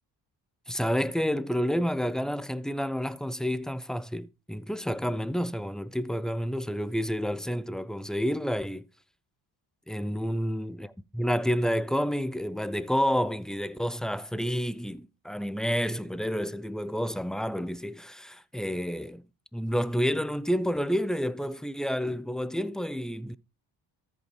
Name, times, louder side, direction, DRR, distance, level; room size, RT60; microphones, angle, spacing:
voice 1, 0.7-8.8 9.9-10.9 11.1-19.2 19.5-23.3, equal, ahead, 0.5 m, -29 dB
14.0 x 5.3 x 3.2 m
cardioid pair, 80°, 45 cm